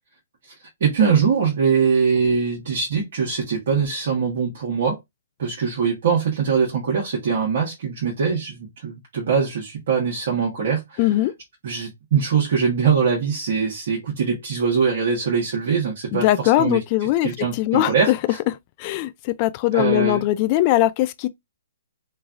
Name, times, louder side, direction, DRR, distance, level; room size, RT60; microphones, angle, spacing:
voice 1, 0.8-5.0 5.4-11.0 11.6-16.8 17.2-18.1 19.7-20.2, right 6 dB, 60° right, 1.0 m, -22 dB
voice 2, 11.0-11.3 16.1-18.2 18.8-21.3, left 15 dB, 35° left, 0.3 m, -20 dB
3.2 x 2.3 x 2.4 m
hypercardioid pair, 135°, 0 cm